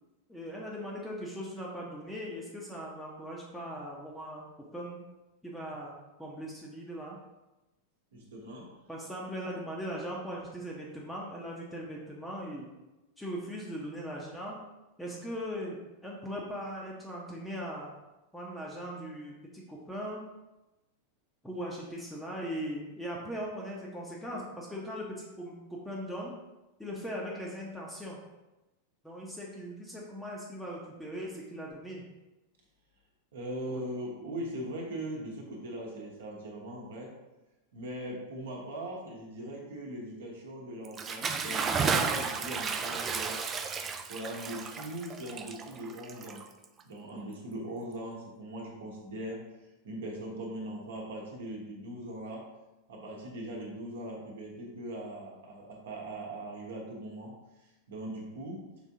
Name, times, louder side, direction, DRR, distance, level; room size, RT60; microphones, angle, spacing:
voice 1, 0.3-4.4 4.7-5.0 5.4-7.2 8.9-12.7 13.2-14.6 15.0-17.9 18.3-20.2 21.4-26.4 26.8-28.2 29.0-32.0 33.7-33.9, equal, 5° left, -4 dB, 0.7 m, -39 dB
voice 2, 8.1-8.8 33.3-37.1 37.7-43.4 44.1-46.5 46.8-49.5 49.8-52.5 52.9-57.4 57.9-58.7, right 1 dB, 60° right, -1 dB, 1.0 m, -40 dB
Bathtub (filling or washing) / Splash splatter, 40.8-46.8, right 5 dB, 25° right, 0.3 m, -33 dB
4.8 x 3.4 x 2.8 m, 1.0 s
figure-of-eight pair, 90°, 0 cm